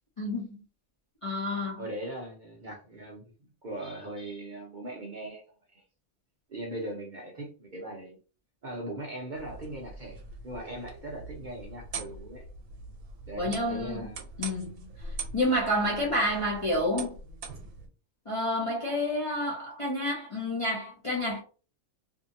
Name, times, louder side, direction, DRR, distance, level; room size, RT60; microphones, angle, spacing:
voice 1, 0.2-0.6 1.2-1.8 13.4-14.1 14.4-14.8 15.3-17.1 18.3-21.4, left 1 dB, 40° left, 0.5 m, -29 dB
voice 2, 1.8-3.2 3.6-5.4 5.7-5.8 6.5-8.2 8.6-12.5 13.3-14.3, right 1 dB, 50° right, 0.6 m, -39 dB
sound 1, 9.3-17.9, right 3 dB, 75° right, 1.0 m, -43 dB
2.6 x 2.6 x 2.6 m
omnidirectional pair, 1.4 m